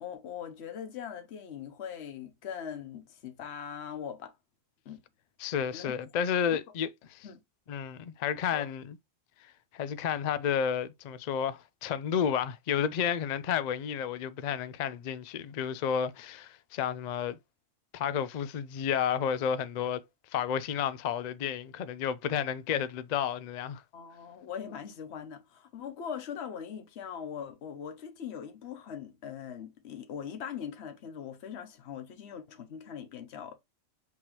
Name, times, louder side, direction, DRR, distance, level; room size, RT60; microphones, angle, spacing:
voice 1, 0.0-4.3 4.8-5.0 5.7-5.9 6.5-6.6 7.2-7.4 8.5-8.7 23.9-33.5, left 8 dB, 60° left, 1.1 m, -41 dB
voice 2, 5.4-7.3 7.7-9.0 9.7-17.4 17.9-20.0 20.3-23.8, left 8 dB, 80° left, 0.3 m, -31 dB
5.5 x 3.0 x 3.0 m
omnidirectional pair, 1.3 m